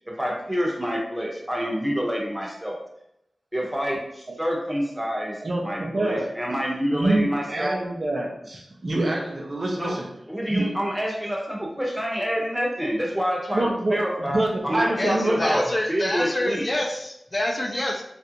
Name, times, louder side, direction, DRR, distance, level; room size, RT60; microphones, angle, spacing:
voice 1, 0.1-2.8 3.5-7.8 9.8-10.0 10.3-16.7, equal, 10° right, -2 dB, 0.9 m, -27 dB
voice 2, 5.4-6.3 6.9-10.1 10.5-10.7 13.5-15.6, right 1 dB, 45° right, 0 dB, 0.6 m, -26 dB
voice 3, 15.0-18.0, left 1 dB, 35° left, 0 dB, 0.6 m, -27 dB
3.3 x 2.5 x 2.9 m, 0.79 s
wide cardioid pair, 70°, 0 cm